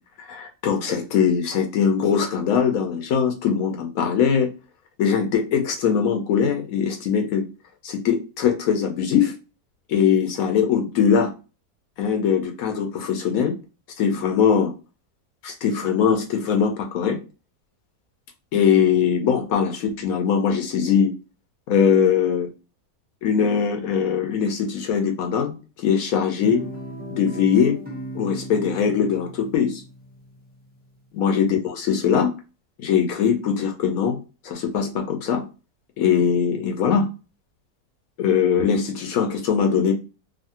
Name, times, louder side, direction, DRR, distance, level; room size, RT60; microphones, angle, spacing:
voice 1, 0.3-4.5 5.0-7.4 7.8-9.3 9.9-11.3 12.0-13.5 14.0-14.7 15.4-17.2 18.5-21.1 21.7-22.5 23.2-26.6 27.1-27.8 28.1-29.8 31.1-32.3 32.8-34.2 34.4-35.4 36.0-37.1 38.2-39.9, left 7 dB, 75° left, 3 dB, 1.0 m, -21 dB
Guitar, 26.4-30.8, equal, 10° right, 0.4 m, -37 dB
2.6 x 2.5 x 2.7 m, 0.32 s
omnidirectional pair, 1.6 m